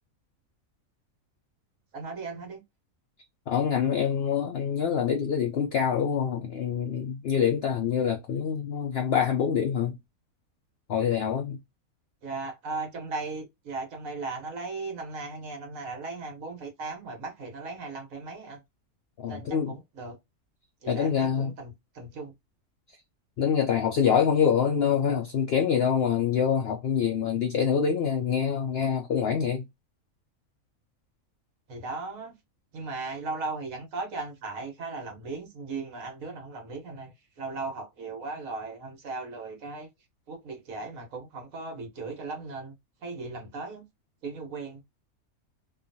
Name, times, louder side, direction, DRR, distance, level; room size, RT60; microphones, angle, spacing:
voice 1, 1.9-2.6 12.2-18.6 19.3-20.2 20.8-22.3 31.7-32.3 32.7-39.9 40.3-42.7 43.0-43.8 44.2-44.8, right 3 dB, 70° right, 1.4 m, -37 dB
voice 2, 3.5-10.0 10.9-11.6 19.2-19.7 20.9-21.5 23.4-29.6, left 7 dB, 70° left, 0.6 m, -25 dB
3.1 x 2.3 x 2.5 m
omnidirectional pair, 1.5 m